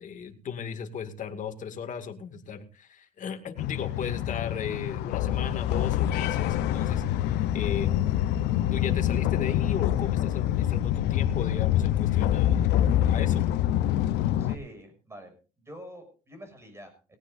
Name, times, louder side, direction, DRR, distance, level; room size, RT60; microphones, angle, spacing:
voice 1, 0.0-8.3 8.7-13.5, left 7 dB, 50° left, 5 dB, 2.2 m, -36 dB
sound 1, 3.6-14.6, left 12 dB, 85° left, 0.8 m, -26 dB
voice 2, 14.4-17.2, equal, 15° right, 7 dB, 6.5 m, -46 dB
18.5 x 18.0 x 2.6 m, 0.35 s
cardioid pair, 110°, 17 cm